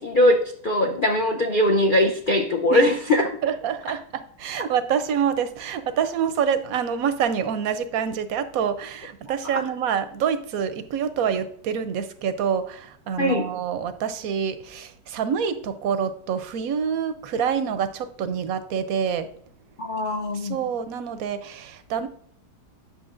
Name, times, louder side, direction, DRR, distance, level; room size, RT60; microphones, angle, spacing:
voice 1, 0.0-3.3 9.5-9.6 13.2-13.5 19.8-20.6, left 1 dB, 70° left, 2 dB, 0.4 m, -21 dB
voice 2, 3.4-19.3 20.4-22.1, right 7 dB, 70° right, 12 dB, 0.9 m, -26 dB
10.0 x 6.4 x 2.5 m, 0.63 s
omnidirectional pair, 1.9 m